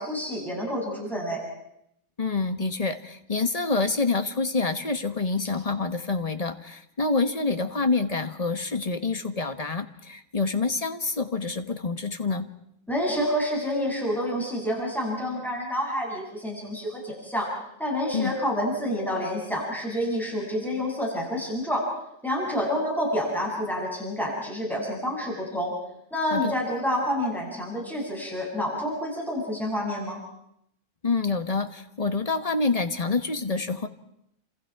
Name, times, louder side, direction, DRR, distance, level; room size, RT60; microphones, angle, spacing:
voice 1, 0.0-1.4 12.9-17.5 17.8-21.8 22.2-25.7 26.1-30.2, equal, ahead, -3 dB, 7.5 m, -28 dB
voice 2, 2.2-12.5 18.1-18.3 26.3-26.5 31.0-33.9, left 3 dB, 30° left, 8 dB, 1.4 m, -27 dB
29.5 x 27.0 x 4.8 m, 0.78 s
omnidirectional pair, 1.3 m